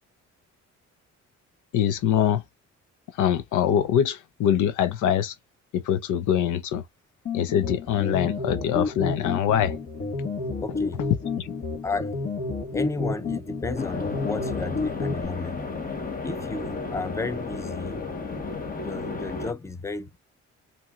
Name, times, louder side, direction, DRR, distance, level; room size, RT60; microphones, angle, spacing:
voice 1, 1.7-2.4 3.1-5.4 5.7-6.8 7.3-9.8 11.4-11.5, left 10 dB, 90° left, 0.7 m, -24 dB
sound 1, 7.3-15.3, left 3 dB, 50° left, 1.6 m, -30 dB
voice 2, 10.6-11.0 11.8-12.2 12.7-15.6 16.2-18.0 18.8-20.2, left 3 dB, 10° left, 0.6 m, -33 dB
sound 2, 13.8-19.5, left 4 dB, 30° left, 1.2 m, -33 dB
5.6 x 2.9 x 2.4 m
cardioid pair, 90°, 30 cm